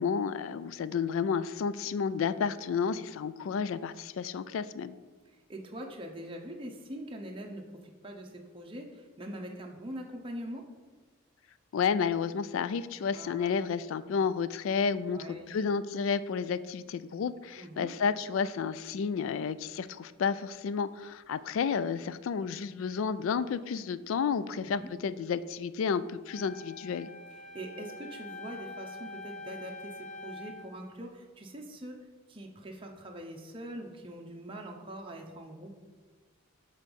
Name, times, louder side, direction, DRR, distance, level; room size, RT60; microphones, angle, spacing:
voice 1, 0.0-4.9 11.7-27.1, left 6 dB, 70° left, 15 dB, 0.3 m, -31 dB
voice 2, 5.2-10.6 13.1-13.5 15.1-15.5 17.6-17.9 24.6-24.9 27.3-35.8, right 1 dB, 25° right, 1 dB, 0.6 m, -43 dB
Wind instrument woodwind instrument, 26.3-30.7, left 2 dB, 35° left, 1.0 m, -45 dB
6.4 x 3.9 x 5.2 m, 1.4 s
head